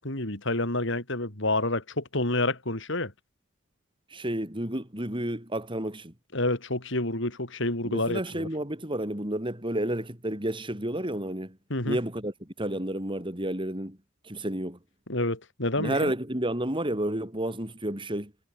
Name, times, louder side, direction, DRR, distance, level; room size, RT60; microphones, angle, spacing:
voice 1, 0.0-3.1 6.3-8.5 11.7-12.0 15.1-16.1, left 2 dB, 65° left, 5.4 m, -28 dB
voice 2, 4.1-6.1 7.8-11.6 11.9-12.3 12.6-14.0 14.2-14.8 15.8-18.3, right 1 dB, 25° right, 5.9 m, -31 dB
head